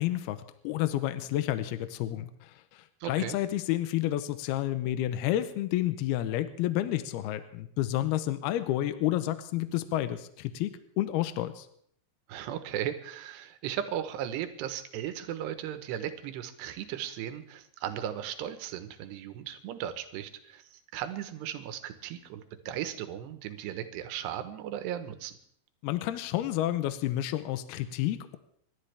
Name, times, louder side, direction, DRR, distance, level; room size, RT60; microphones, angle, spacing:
voice 1, 0.0-11.7 25.8-28.4, left 13 dB, 80° left, 11 dB, 2.4 m, -30 dB
voice 2, 3.0-3.4 12.3-25.4, right 10 dB, 75° right, 9 dB, 3.0 m, -36 dB
28.0 x 12.5 x 3.4 m, 0.66 s
omnidirectional pair, 5.3 m